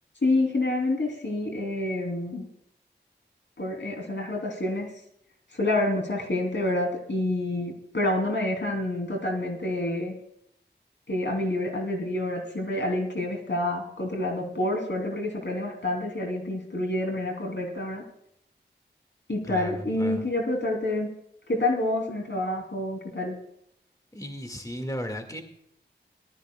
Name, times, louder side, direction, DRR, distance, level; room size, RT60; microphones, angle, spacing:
voice 1, 0.2-2.4 3.6-4.9 5.5-10.1 11.1-18.0 19.3-21.1 21.5-23.4, left 1 dB, 75° left, 2 dB, 3.1 m, -28 dB
voice 2, 19.4-20.3 24.1-25.4, equal, 20° left, 5 dB, 1.9 m, -35 dB
21.0 x 13.0 x 2.3 m, 0.73 s
wide cardioid pair, 50°, 19 cm